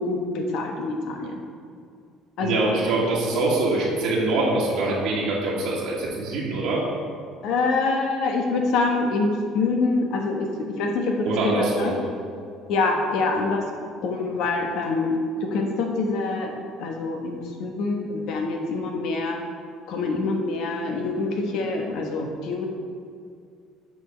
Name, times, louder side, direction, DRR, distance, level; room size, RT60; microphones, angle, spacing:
voice 1, 0.0-1.3 2.4-2.7 7.4-10.5 10.8-11.9 12.7-13.6 14.0-15.2 15.5-16.5 16.8-19.4 19.9-22.7, left 3 dB, 70° left, 2 dB, 1.2 m, -25 dB
voice 2, 2.4-6.9 11.2-11.9, right 2 dB, 75° right, -5 dB, 1.6 m, -24 dB
7.7 x 4.0 x 6.4 m, 2.3 s
supercardioid pair, 90°, 0 cm